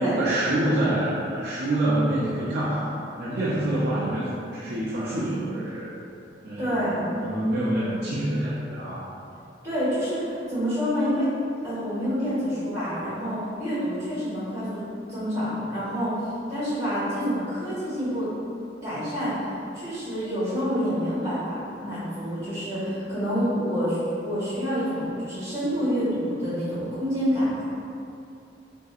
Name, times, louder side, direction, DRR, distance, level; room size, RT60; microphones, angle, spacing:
voice 1, 0.0-5.9 6.4-6.8 7.1-9.1, right 1 dB, 55° right, -8 dB, 0.4 m, -26 dB
voice 2, 6.6-7.0 9.6-11.3 11.6-14.8 15.1-18.3 18.8-27.7, equal, 15° right, -13 dB, 1.4 m, -27 dB
3.4 x 2.6 x 2.3 m, 2.5 s
head